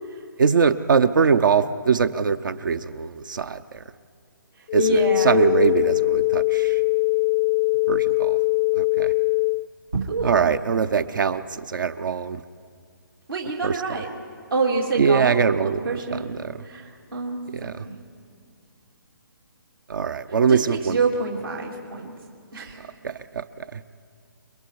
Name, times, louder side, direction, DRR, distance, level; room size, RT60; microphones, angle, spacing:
voice 1, 0.4-3.6 4.7-6.8 7.9-8.4 8.8-9.1 10.2-12.4 13.6-13.7 15.0-16.5 17.5-17.8 19.9-21.0 23.0-23.8, right 6 dB, 65° right, 11 dB, 0.7 m, -22 dB
voice 2, 4.6-5.6 9.9-10.4 13.3-14.1 14.5-15.3 15.6-16.3 16.6-18.0 20.5-22.1 22.5-22.9, right 4 dB, 80° right, -2 dB, 3.1 m, -27 dB
sound 1, 4.7-9.7, left 24 dB, 30° left, 0.4 m, -21 dB
29.5 x 21.0 x 4.7 m, 2.3 s
figure-of-eight pair, 140°, 12 cm